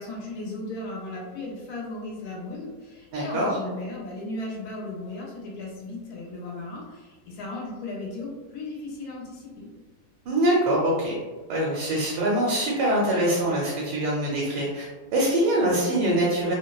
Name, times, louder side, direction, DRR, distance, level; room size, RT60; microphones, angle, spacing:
voice 1, 0.0-9.7, left 2 dB, 75° left, -2 dB, 1.1 m, -36 dB
voice 2, 3.1-3.5 10.2-11.2 11.5-16.5, right 1 dB, 85° right, -4 dB, 1.2 m, -24 dB
2.8 x 2.1 x 2.3 m, 1.3 s
omnidirectional pair, 1.8 m